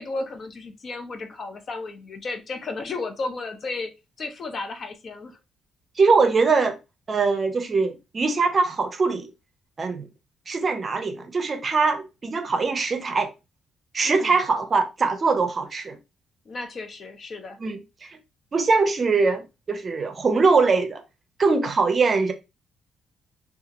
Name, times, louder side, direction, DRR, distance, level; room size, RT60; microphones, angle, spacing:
voice 1, 0.0-3.9 4.2-5.4 14.0-14.4 16.5-17.6, left 3 dB, 45° left, 0.6 m, -33 dB
voice 2, 6.0-6.8 7.1-9.3 9.8-10.1 10.5-13.3 13.9-16.0 17.6-17.8 18.5-21.0 21.4-22.3, right 4 dB, 40° right, 0.5 m, -22 dB
2.8 x 2.4 x 2.5 m
cardioid pair, 90°, 0 cm